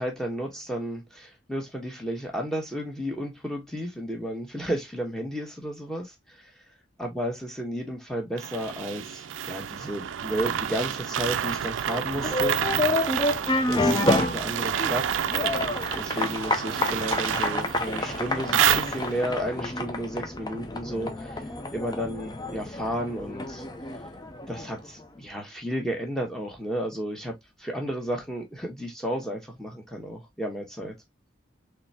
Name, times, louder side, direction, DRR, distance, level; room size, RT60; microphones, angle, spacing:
voice 1, 0.0-6.5 7.0-12.6 13.7-15.6 15.9-21.4 21.7-23.6 24.5-31.0, equal, 5° left, 1.2 m, -32 dB
sound 1, 8.4-19.4, right 9 dB, 85° right, 0.4 m, -29 dB
sound 2, 12.1-24.9, left 2 dB, 20° left, 0.5 m, -29 dB
4.0 x 3.3 x 2.8 m
head